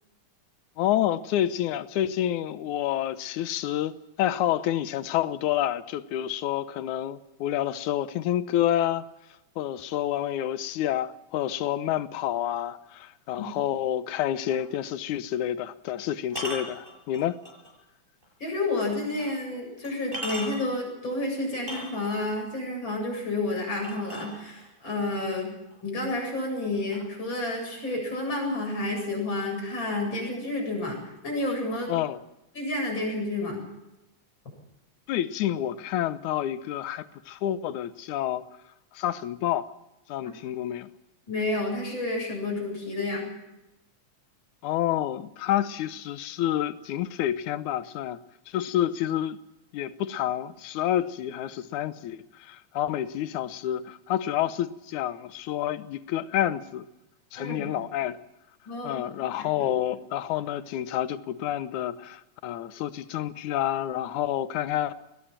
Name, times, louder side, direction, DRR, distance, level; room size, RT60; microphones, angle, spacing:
voice 1, 0.8-9.1 9.6-17.4 31.9-32.2 35.1-38.4 38.9-39.7 40.1-40.9 44.6-48.2 48.5-49.4 49.7-56.9 57.3-58.2 58.8-64.9, left 11 dB, 85° left, 2.4 m, -28 dB
sound 1, 14.5-14.7 16.3-17.7 18.2-18.3 19.2-19.3 19.8-20.8 21.5-22.3 23.8-24.8 25.7-25.8 26.2-26.6 26.9-27.9, equal, 15° right, 6.8 m, -38 dB
voice 2, 18.4-25.5 25.8-31.9 32.5-33.6 41.3-43.3 57.4-57.7 58.7-59.1 59.4-59.7, left 2 dB, 40° left, 8.7 m, -30 dB
21.5 x 18.5 x 7.4 m
omnidirectional pair, 3.3 m